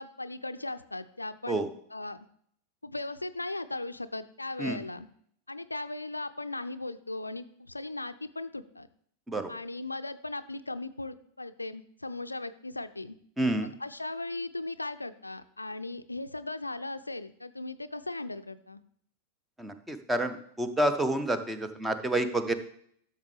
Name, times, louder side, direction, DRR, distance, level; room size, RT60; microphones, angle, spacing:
voice 1, 0.0-2.2 2.8-5.1 5.5-8.9 9.5-13.1 13.8-18.8, left 2 dB, 85° left, 12 dB, 0.4 m, -38 dB
voice 2, 13.4-13.7 19.6-22.5, right 1 dB, 10° right, 9 dB, 0.8 m, -29 dB
12.0 x 6.6 x 3.3 m, 0.65 s
figure-of-eight pair, 90°, 0 cm